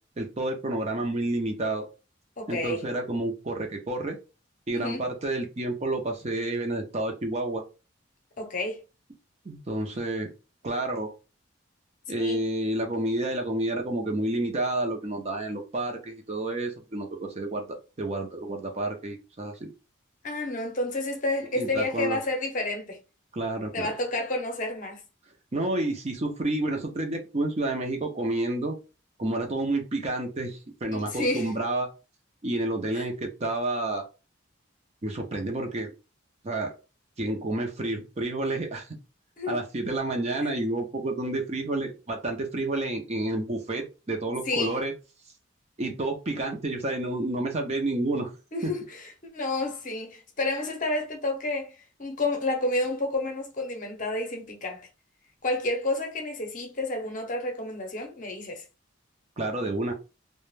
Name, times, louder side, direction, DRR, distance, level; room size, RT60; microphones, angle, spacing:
voice 1, 0.2-1.9 2.5-4.2 4.7-7.6 9.4-10.3 10.6-11.1 12.1-19.7 21.5-22.2 23.3-23.9 25.5-28.8 29.2-31.9 32.4-34.0 35.0-35.9 36.4-36.7 37.2-38.9 39.5-44.9 45.8-48.3 48.6-48.7 59.4-59.9, right 2 dB, 30° right, 0.5 m, -29 dB
voice 2, 2.4-2.8 4.7-5.0 8.4-8.8 12.2-12.4 20.2-23.0 23.7-25.0 30.9-31.6 32.9-33.1 39.4-39.6 44.5-44.8 48.5-54.9 55.4-58.6, left 2 dB, 40° left, 0.7 m, -30 dB
2.3 x 2.1 x 3.1 m
head